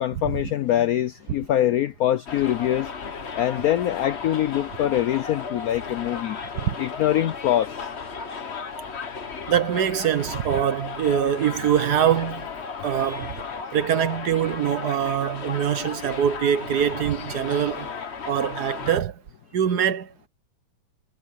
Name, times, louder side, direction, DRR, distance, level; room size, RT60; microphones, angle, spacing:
voice 1, 0.0-2.9 3.3-7.8 13.0-13.3, left 12 dB, 85° left, 0.8 m, -24 dB
Subway metro underground, 2.3-19.0, left 5 dB, 35° left, 1.3 m, -35 dB
voice 2, 9.5-12.5 12.8-13.4 13.7-17.9 18.3-19.2 19.5-20.3, right 9 dB, 60° right, 1.3 m, -23 dB
omnidirectional pair, 2.2 m